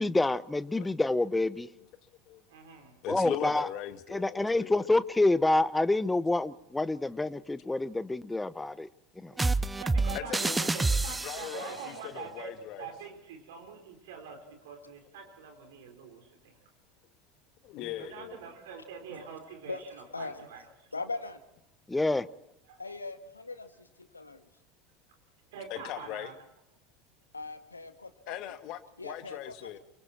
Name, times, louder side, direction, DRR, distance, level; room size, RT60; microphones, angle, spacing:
voice 1, 0.0-1.7 3.1-3.7 4.1-8.9 9.2-9.3 21.9-22.3, left 2 dB, 10° left, 1.0 m, -27 dB
voice 2, 2.5-2.9 9.2-12.5 12.8-16.6 18.0-20.6 22.7-22.8 25.5-26.3, right 5 dB, 65° right, 4.4 m, -45 dB
voice 3, 3.0-4.8 10.1-10.9 11.2-12.9 17.6-18.4 25.7-26.3 28.3-29.8, left 12 dB, 50° left, 2.0 m, -40 dB
sound 1, 9.4-11.7, right 3 dB, 10° right, 0.8 m, -28 dB
voice 4, 20.1-20.5 20.9-21.4 22.8-24.5 27.3-28.6 29.0-29.8, left 3 dB, 85° left, 1.8 m, -40 dB
28.5 x 24.0 x 4.4 m
figure-of-eight pair, 75°, 0 cm